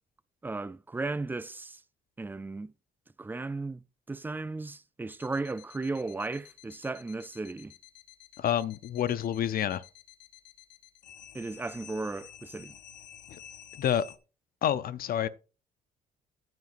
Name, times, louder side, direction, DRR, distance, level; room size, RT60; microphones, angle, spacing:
voice 1, 0.4-1.8 2.2-2.7 3.2-7.7 11.3-12.7, right 3 dB, 10° right, 0.3 m, -35 dB
sound 1, 5.1-14.2, left 10 dB, 80° left, 0.8 m, -52 dB
voice 2, 8.4-9.8 13.8-14.1 14.6-15.3, left 10 dB, 55° left, 0.6 m, -28 dB
9.4 x 9.1 x 2.5 m
cardioid pair, 85°, 18 cm